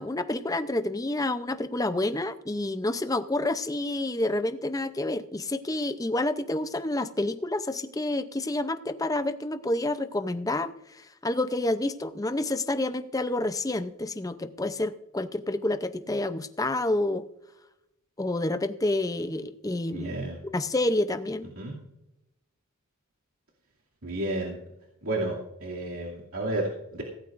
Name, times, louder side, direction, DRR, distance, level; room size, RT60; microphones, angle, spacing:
voice 1, 0.0-17.3 18.2-20.2 20.4-21.5, left 2 dB, 15° left, 10 dB, 0.5 m, -29 dB
voice 2, 19.9-20.4 21.6-21.7 24.0-24.6 25.0-27.0, right 1 dB, 75° right, -4 dB, 2.5 m, -31 dB
16.5 x 14.5 x 2.5 m, 0.88 s
head